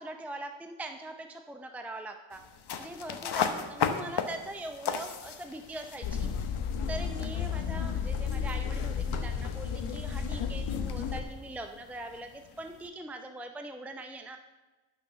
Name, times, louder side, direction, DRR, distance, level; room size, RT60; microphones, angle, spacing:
voice 1, 0.0-2.4 2.8-6.5 6.9-14.4, right 1 dB, 5° right, 5 dB, 0.6 m, -42 dB
sound 1, 2.3-12.9, left 7 dB, 55° left, 1.1 m, -38 dB
sound 2, 6.0-11.2, left 6 dB, 85° left, 1.3 m, -32 dB
12.0 x 6.4 x 6.8 m, 1.2 s
wide cardioid pair, 130°, 49 cm